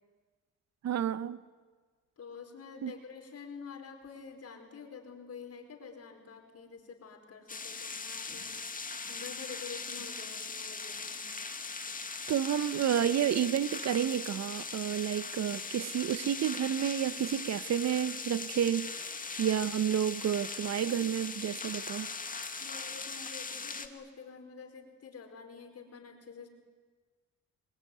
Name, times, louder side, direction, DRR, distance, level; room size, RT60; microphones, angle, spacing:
voice 1, 0.8-1.4 2.8-2.9 12.3-18.9 19.4-22.1, right 9 dB, 60° right, 1.2 m, -30 dB
voice 2, 2.2-8.6 9.1-11.3 22.6-26.5, left 5 dB, 50° left, 4.9 m, -48 dB
sound 1, 7.5-23.9, left 4 dB, 25° left, 2.3 m, -40 dB
27.5 x 22.5 x 9.4 m
cardioid pair, 90°, 30 cm